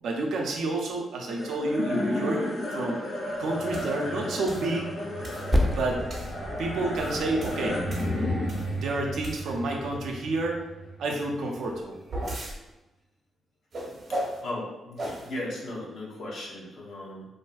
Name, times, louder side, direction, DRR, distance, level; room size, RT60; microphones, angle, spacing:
voice 1, 0.0-2.5 2.7-3.0 3.4-4.9 5.8-6.0 6.6-7.8 8.7-10.6 11.0-12.0, right 2 dB, 80° right, 1 dB, 0.5 m, -29 dB
sound 1, 1.3-11.8, left 1 dB, 90° left, 1.2 m, -33 dB
sound 2, 3.7-3.9 4.5-4.7 5.2-5.5 6.1-6.4 6.8-8.8 9.2-9.7 11.6-12.6 13.7-14.4 15.0-15.3, right 1 dB, 50° right, 0.7 m, -36 dB
Percussion, 5.5-10.4, left 1 dB, ahead, 0.4 m, -32 dB
voice 2, 14.1-17.2, left 1 dB, 75° left, -3 dB, 0.7 m, -37 dB
2.5 x 2.5 x 2.3 m, 1.0 s
cardioid pair, 80°, 0 cm